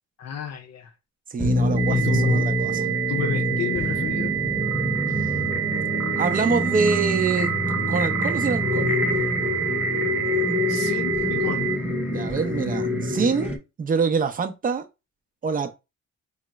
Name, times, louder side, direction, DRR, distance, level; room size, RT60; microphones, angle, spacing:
voice 1, 0.2-0.9 1.9-2.5 3.1-4.3 10.7-11.7, left 9 dB, 60° left, 0.6 m, -31 dB
voice 2, 1.3-2.0 2.3-2.7 6.2-7.5 7.9-8.9 12.1-14.8 15.4-15.7, right 5 dB, 30° right, 0.5 m, -25 dB
sound 1, 1.4-13.6, left 1 dB, 5° right, 0.8 m, -25 dB
sound 2, 1.8-11.8, right 15 dB, 50° right, 0.9 m, -28 dB
4.0 x 2.0 x 2.3 m
cardioid pair, 90°, 30 cm